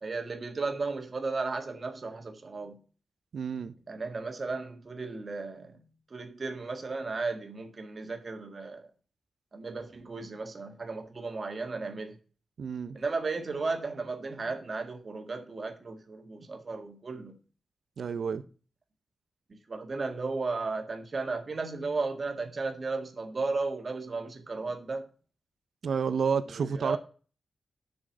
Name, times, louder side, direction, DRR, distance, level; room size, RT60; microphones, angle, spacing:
voice 1, 0.0-2.8 3.9-5.8 6.1-8.9 9.5-12.2 12.9-17.4 19.5-25.1 26.5-27.0, right 3 dB, 40° right, 1.8 m, -35 dB
voice 2, 3.3-3.7 12.6-13.0 18.0-18.4 25.8-27.0, right 6 dB, 75° right, 0.7 m, -30 dB
7.7 x 6.3 x 7.1 m
wide cardioid pair, 130°, 0 cm